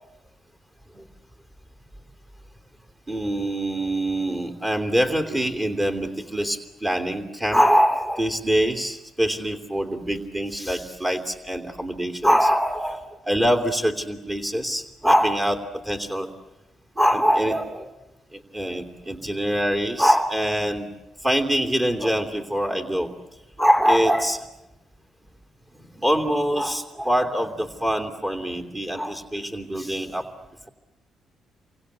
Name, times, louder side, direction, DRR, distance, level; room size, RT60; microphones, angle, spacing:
voice 1, 3.1-16.3 17.0-17.9 18.3-20.9 21.2-23.1 23.6-24.4 25.9-30.3, equal, 20° right, 4 dB, 2.9 m, -23 dB
29.0 x 24.5 x 8.4 m, 0.97 s
cardioid pair, 90°, 0 cm